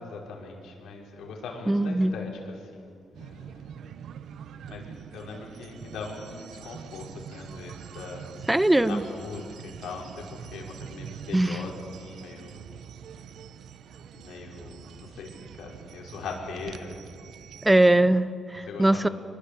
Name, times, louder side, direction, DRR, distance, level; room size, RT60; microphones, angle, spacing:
voice 1, 0.0-3.7 4.7-8.3 8.9-12.6 14.1-17.2 18.6-19.1, left 4 dB, 85° left, 0 dB, 5.6 m, -40 dB
voice 2, 1.7-2.1 8.5-9.0 11.3-11.6 17.6-19.1, right 1 dB, 10° right, 15 dB, 0.7 m, -21 dB
sound 1, 3.1-18.0, right 8 dB, 75° right, 0.9 m, -44 dB
25.5 x 22.5 x 8.6 m, 2.2 s
cardioid pair, 125°, 0 cm